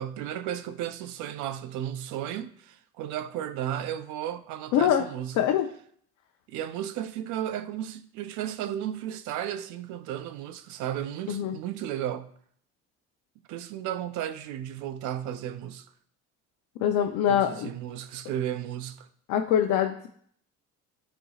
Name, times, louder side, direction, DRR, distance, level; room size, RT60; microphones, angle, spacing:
voice 1, 0.0-5.3 6.5-12.3 13.5-15.8 17.3-19.1, right 11 dB, 85° right, 0.6 m, -34 dB
voice 2, 4.7-5.0 5.3-5.7 11.3-11.5 16.8-17.7 19.3-20.1, left 9 dB, 80° left, 0.7 m, -24 dB
12.5 x 4.5 x 2.4 m
cardioid pair, 120°, 29 cm